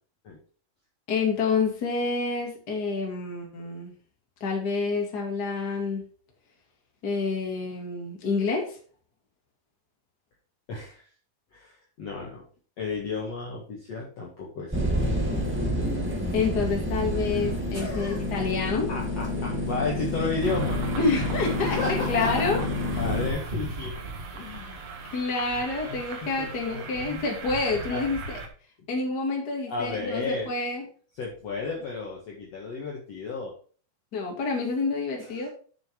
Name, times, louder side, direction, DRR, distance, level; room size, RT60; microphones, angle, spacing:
voice 1, 1.1-3.9 4.4-6.0 7.0-8.7 16.3-18.9 21.0-22.6 22.9-23.0 25.1-28.4 28.9-30.8 34.1-35.5, left 4 dB, 30° left, 0 dB, 2.4 m, -28 dB
voice 2, 10.7-11.0 11.5-12.4 12.8-15.2 17.7-18.2 18.9-20.8 21.1-24.9 25.7-27.2 27.7-28.1 29.7-30.5 31.2-33.5 35.3-35.5, left 4 dB, 50° left, -3 dB, 2.4 m, -34 dB
sound 1, 14.7-23.3, left 1 dB, 5° right, 1.0 m, -29 dB
sound 2, 20.4-28.5, right 2 dB, 55° right, 2.2 m, -37 dB
7.6 x 7.1 x 4.6 m, 0.42 s
omnidirectional pair, 4.4 m